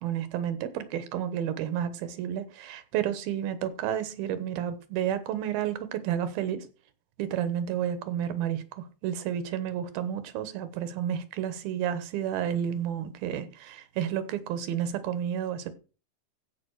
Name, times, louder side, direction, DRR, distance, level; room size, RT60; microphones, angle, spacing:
voice 1, 0.0-6.7 7.2-15.7, right 9 dB, 80° right, 2.8 m, -31 dB
15.5 x 5.2 x 4.7 m
omnidirectional pair, 4.3 m